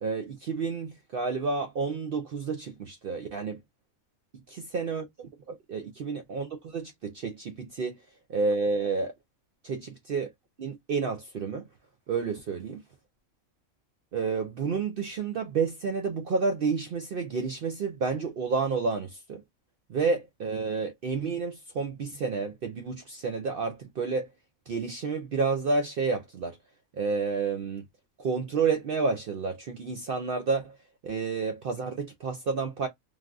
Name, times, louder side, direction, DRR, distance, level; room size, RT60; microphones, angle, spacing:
voice 1, 0.0-3.6 4.7-8.0 8.3-9.1 9.6-10.3 10.6-11.7 12.1-12.8 14.1-19.4 19.9-24.3 24.7-26.6 26.9-27.9 28.2-30.8 31.0-32.9, right 4 dB, 70° right, 0.5 m, -30 dB
3.3 x 2.3 x 2.4 m
omnidirectional pair, 1.5 m